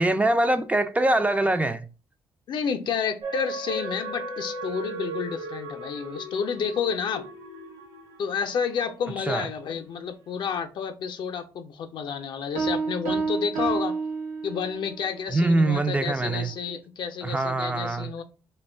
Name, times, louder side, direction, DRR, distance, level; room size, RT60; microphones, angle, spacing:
voice 1, 0.0-1.9 9.2-9.5 15.3-16.5 17.2-18.1, right 2 dB, 15° right, 0.3 m, -23 dB
voice 2, 2.5-7.2 8.2-13.9 14.4-18.2, left 6 dB, 60° left, 0.5 m, -30 dB
sound 1, 3.2-8.9 9.4-9.5, right 2 dB, 60° right, 1.0 m, -36 dB
sound 2, 12.6-14.9, right 4 dB, 90° right, 0.6 m, -29 dB
2.3 x 2.2 x 3.2 m
hypercardioid pair, 50°, 9 cm